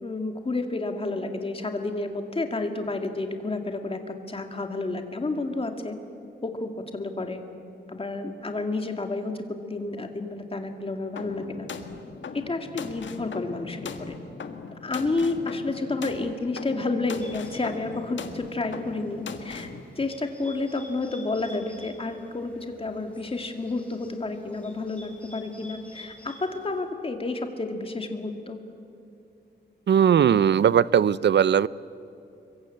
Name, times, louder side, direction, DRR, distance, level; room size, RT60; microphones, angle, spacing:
voice 1, 0.0-5.9 6.4-7.4 7.9-9.3 9.7-11.7 12.3-14.1 14.8-19.7 20.0-28.6, left 3 dB, 30° left, 5 dB, 2.2 m, -30 dB
sound 1, 11.2-19.8, left 5 dB, 85° left, 1.6 m, -39 dB
Bird, 17.2-26.8, left 1 dB, 5° left, 4.3 m, -51 dB
voice 2, 29.9-31.7, right 8 dB, 70° right, 19 dB, 0.5 m, -19 dB
26.5 x 23.0 x 8.7 m, 2.7 s
wide cardioid pair, 155°, 19 cm